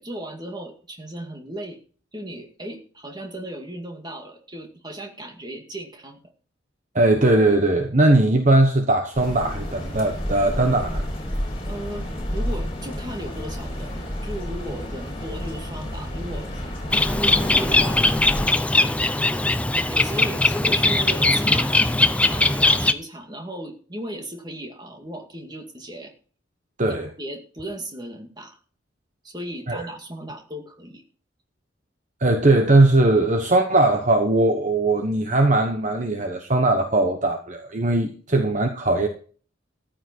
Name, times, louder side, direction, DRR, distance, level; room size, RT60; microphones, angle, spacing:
voice 1, 0.0-1.8 2.1-6.2 11.7-16.7 17.1-26.1 26.9-28.6 29.2-31.0, right 1 dB, 20° right, 2.2 m, -36 dB
voice 2, 6.9-11.0 26.8-27.1 29.7-29.9 32.2-39.1, right 2 dB, 40° right, 1.2 m, -19 dB
sound 1, 9.1-18.5, equal, 30° left, 4.5 m, -30 dB
Bird, 16.9-22.9, left 2 dB, 5° left, 0.6 m, -20 dB
14.0 x 9.0 x 4.5 m
head